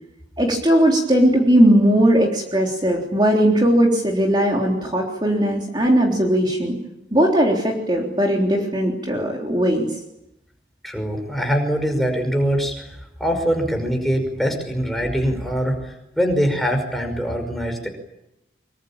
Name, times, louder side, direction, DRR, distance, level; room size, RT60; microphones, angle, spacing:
voice 1, 0.4-6.8 7.1-9.9, right 1 dB, 25° right, 0 dB, 3.6 m, -18 dB
voice 2, 10.8-17.9, equal, ahead, 4 dB, 5.5 m, -23 dB
25.0 x 24.5 x 8.9 m, 0.89 s
head